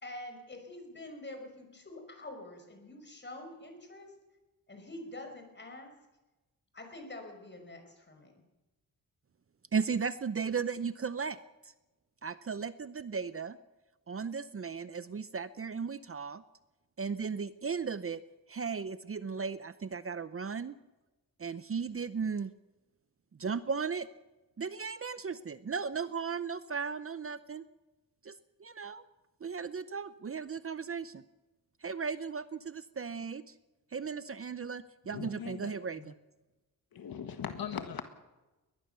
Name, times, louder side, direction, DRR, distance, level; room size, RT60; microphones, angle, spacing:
voice 1, 0.0-4.1 4.7-5.9 6.7-8.4, left 1 dB, 30° left, 5 dB, 5.3 m, -46 dB
voice 2, 9.7-11.4 12.2-13.6 14.1-16.4 17.0-18.2 18.5-20.8 21.4-22.5 23.4-24.1 24.6-27.6 28.2-28.3 28.6-29.0 29.4-31.2 31.8-33.5 33.9-36.0, right 5 dB, 40° right, 14 dB, 0.7 m, -36 dB
voice 3, 35.1-35.7 36.0-36.1 36.9-38.0, left 7 dB, 75° left, 8 dB, 1.6 m, -39 dB
21.5 x 20.0 x 6.8 m, 1.1 s
wide cardioid pair, 130°, 36 cm